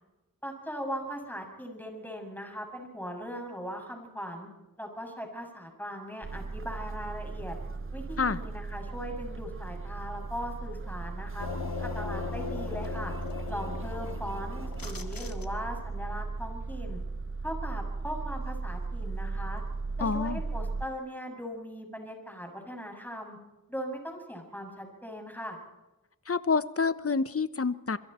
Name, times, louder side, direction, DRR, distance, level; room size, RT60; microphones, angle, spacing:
voice 1, 0.4-4.5 4.8-7.6 7.9-11.5 11.8-13.1 13.5-17.0 17.4-19.6 20.0-23.4 23.7-25.6, equal, 5° left, 2 dB, 7.0 m, -39 dB
sound 1, 6.2-20.9, right 3 dB, 40° right, 0.8 m, -37 dB
sound 2, 11.4-15.9, left 4 dB, 80° left, 2.1 m, -38 dB
voice 2, 20.0-20.4 26.3-28.0, left 4 dB, 40° left, 14 dB, 1.0 m, -28 dB
27.5 x 23.0 x 4.4 m, 1.0 s
wide cardioid pair, 60°, 34 cm